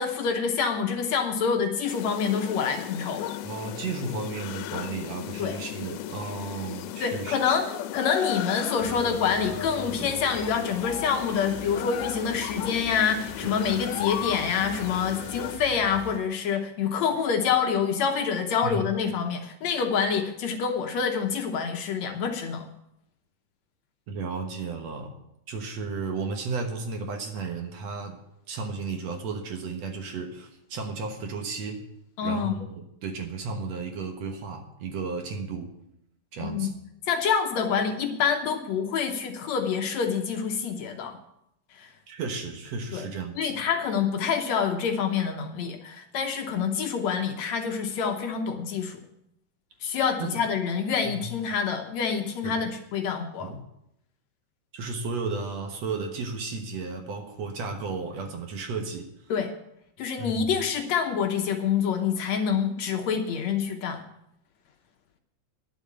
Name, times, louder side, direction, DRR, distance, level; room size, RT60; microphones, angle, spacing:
voice 1, 0.0-3.3 5.4-5.6 7.0-7.7 7.9-22.7 32.2-32.6 36.4-36.7 37.1-41.2 41.7-41.9 42.9-43.1 43.4-49.0 49.8-53.5 59.3-59.5 60.0-64.0, left 6 dB, 65° left, 4 dB, 2.1 m, -27 dB
sound 1, 1.9-15.6, left 12 dB, 85° left, 2.2 m, -35 dB
voice 2, 3.4-7.6 18.6-18.8 24.1-25.1 25.5-28.2 28.5-31.8 32.2-35.7 36.3-36.7 42.1-43.5 50.2-50.4 51.0-51.3 52.4-52.6 53.4-53.6 54.7-59.1 60.2-60.5, right 4 dB, 60° right, 4 dB, 2.2 m, -34 dB
sound 2, 8.8-16.2, equal, 40° right, 4.5 m, -43 dB
10.0 x 7.9 x 8.6 m, 0.80 s
omnidirectional pair, 3.6 m